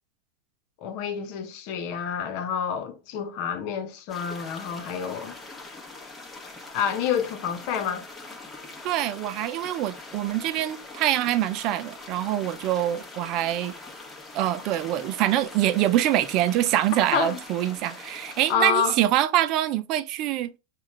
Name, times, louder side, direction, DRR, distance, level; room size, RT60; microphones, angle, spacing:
voice 1, 0.8-5.4 6.7-8.0 17.1-17.4 18.5-19.0, left 7 dB, 55° left, 1.0 m, -28 dB
sound 1, 4.1-18.6, left 3 dB, 10° left, 1.1 m, -43 dB
voice 2, 8.8-13.7 14.3-20.5, right 13 dB, 50° right, 0.5 m, -25 dB
5.6 x 2.5 x 3.2 m
hypercardioid pair, 105°, 0 cm